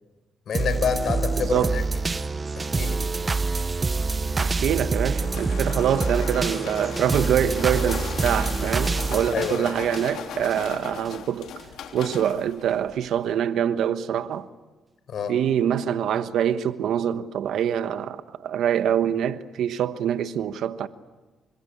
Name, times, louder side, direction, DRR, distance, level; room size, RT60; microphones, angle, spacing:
voice 1, 0.5-1.8 2.6-3.0 9.3-9.7 15.1-15.3, left 6 dB, 60° left, 5.1 m, -27 dB
sound 1, 0.5-10.6 11.1-11.2, right 3 dB, 25° right, 0.9 m, -26 dB
voice 2, 1.4-1.8 4.4-11.5 11.9-14.5 15.3-20.9, right 9 dB, 75° right, 1.3 m, -25 dB
sound 2, 4.5-13.2, left 8 dB, 80° left, 3.3 m, -38 dB
27.0 x 26.0 x 8.2 m
cardioid pair, 90°, 0 cm